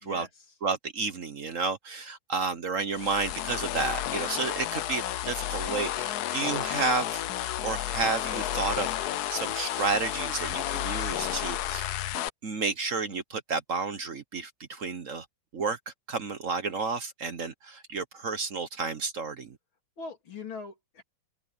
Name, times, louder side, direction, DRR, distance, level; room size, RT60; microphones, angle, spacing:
voice 1, 0.0-0.5 4.4-4.6 20.0-21.0, left 4 dB, 85° left, 4.3 m, -42 dB
voice 2, 0.6-7.2 7.6-15.2 15.5-15.8 16.1-19.5, right 4 dB, 50° right, 1.2 m, -31 dB
sound 1, 2.9-12.3, left 13 dB, 65° left, 1.0 m, -32 dB
omnidirectional pair, 2.1 m